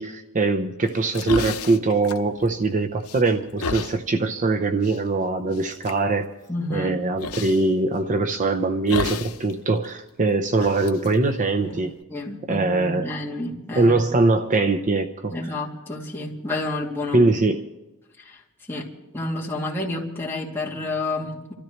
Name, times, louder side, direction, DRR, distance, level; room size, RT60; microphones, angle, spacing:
voice 1, 0.0-6.3 6.7-11.9 12.5-13.1 13.7-15.4 17.1-17.6, right 3 dB, 35° right, 6 dB, 0.6 m, -22 dB
sound 1, 0.9-2.7 3.0-4.0 4.8-5.0 5.5-6.0 7.2-7.7 8.9-9.5 9.8-9.9 10.5-12.0, left 4 dB, 80° left, 0.7 m, -32 dB
voice 2, 6.5-7.0 11.7-11.8 12.1-14.0 15.3-17.3 18.2-18.4 18.7-18.9 19.1-21.5, left 2 dB, 10° left, -4 dB, 2.5 m, -30 dB
28.5 x 13.5 x 3.1 m, 1.0 s
head